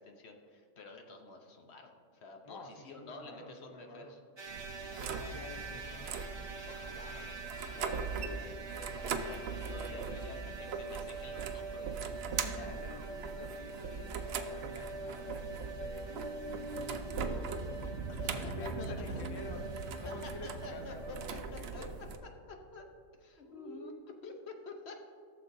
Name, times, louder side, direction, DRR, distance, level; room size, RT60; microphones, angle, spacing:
voice 1, 0.0-4.2 6.7-12.0 18.1-19.2 20.0-21.8 22.2-22.9 23.2-23.9 24.2-25.0, left 3 dB, 60° left, 4 dB, 1.0 m, -50 dB
voice 2, 2.4-4.1 5.0-6.1 9.8-10.2 12.3-17.6 18.0-21.9 23.4-24.1, left 1 dB, 25° left, 3 dB, 0.5 m, -48 dB
sound 1, 4.4-21.5, right 3 dB, 35° right, 0.4 m, -45 dB
sound 2, 4.5-22.2, right 5 dB, 60° right, 0.8 m, -40 dB
15.5 x 6.9 x 2.6 m, 2.3 s
omnidirectional pair, 1.3 m